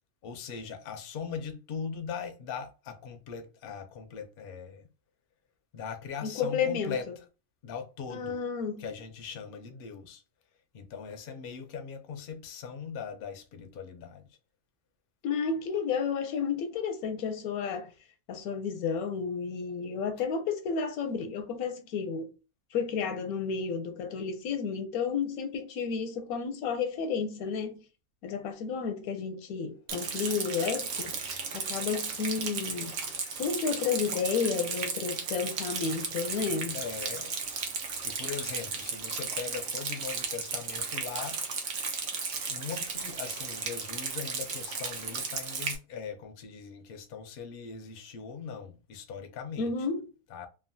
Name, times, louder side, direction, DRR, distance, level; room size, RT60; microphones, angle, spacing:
voice 1, 0.2-4.9 5.7-7.1 7.6-8.4 8.8-10.2 10.7-14.3 36.7-37.3 38.0-41.4 42.5-49.7 50.3-50.5, left 6 dB, 65° left, 0.5 m, -40 dB
voice 2, 6.2-7.0 8.1-8.9 15.2-17.9 18.3-22.3 22.7-27.8 28.2-31.1 31.5-33.0 33.3-36.8 49.6-50.0, left 6 dB, 85° left, 1.1 m, -31 dB
Rain, 29.9-45.8, right 5 dB, 75° right, 1.1 m, -35 dB
2.9 x 2.2 x 2.5 m
omnidirectional pair, 1.5 m